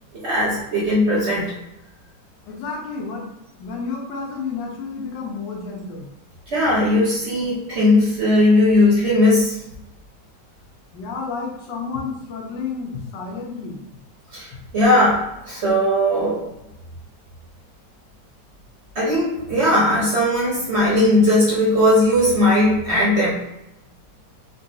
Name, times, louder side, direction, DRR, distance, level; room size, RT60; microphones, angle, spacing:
voice 1, 0.2-1.5 6.5-9.6 14.3-16.4 18.9-23.4, left 1 dB, 50° right, -6 dB, 0.9 m, -18 dB
voice 2, 2.5-3.3 3.6-6.1 10.9-13.8, left 4 dB, 85° left, -1 dB, 1.4 m, -30 dB
3.8 x 2.3 x 2.6 m, 0.88 s
omnidirectional pair, 1.9 m